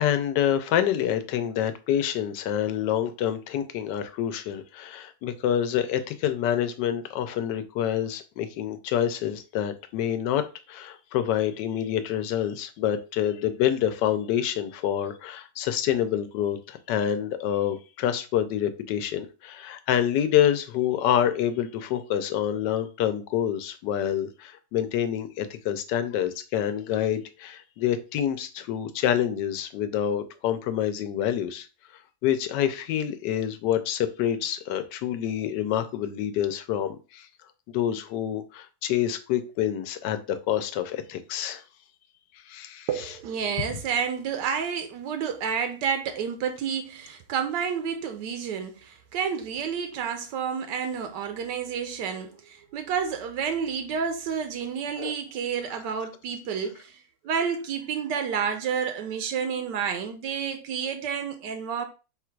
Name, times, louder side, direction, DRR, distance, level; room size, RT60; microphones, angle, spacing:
voice 1, 0.0-10.4 10.7-31.7 32.2-37.3 37.7-41.6 42.4-43.0 55.0-55.1, left 10 dB, 80° left, 1.2 m, -27 dB
voice 2, 42.9-61.9, right 7 dB, 80° right, 1.2 m, -30 dB
3.8 x 2.4 x 4.5 m
omnidirectional pair, 1.8 m